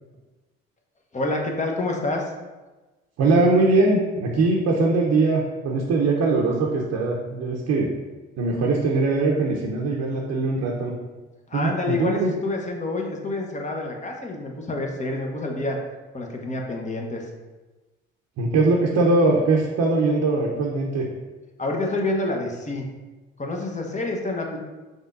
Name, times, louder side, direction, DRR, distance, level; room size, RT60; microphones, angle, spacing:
voice 1, 1.1-2.3 11.5-15.8 16.1-17.3 21.6-22.9 23.4-24.6, left 2 dB, 25° left, 1 dB, 1.0 m, -28 dB
voice 2, 3.2-7.9 8.4-11.0 11.5-12.3 18.4-21.1, right 3 dB, 55° right, -2 dB, 0.8 m, -21 dB
5.4 x 3.7 x 2.6 m, 1.2 s
hypercardioid pair, 65°, 31 cm